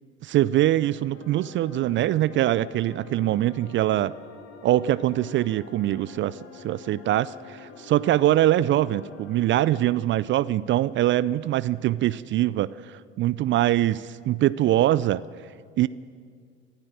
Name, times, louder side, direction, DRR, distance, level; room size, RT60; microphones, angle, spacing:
voice 1, 0.2-4.1 4.6-15.2 15.8-15.9, right 14 dB, 35° right, 19 dB, 0.4 m, -23 dB
sound 1, 1.1-9.9, left 6 dB, 40° left, 3.2 m, -46 dB
23.5 x 15.0 x 7.6 m, 2.1 s
figure-of-eight pair, 70°, 36 cm